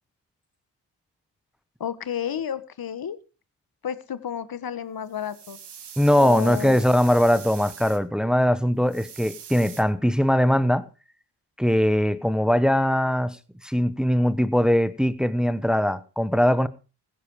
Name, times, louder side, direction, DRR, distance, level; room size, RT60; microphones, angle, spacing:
voice 1, 1.8-3.2 3.8-5.6 6.2-6.8, left 8 dB, 55° left, 1.5 m, -31 dB
sound 1, 5.1-8.0 8.9-9.8, right 8 dB, 70° right, 2.6 m, -43 dB
voice 2, 6.0-10.8 11.6-13.4 13.6-16.7, equal, ahead, 1.1 m, -21 dB
16.0 x 10.5 x 4.9 m
supercardioid pair, 55°, 42 cm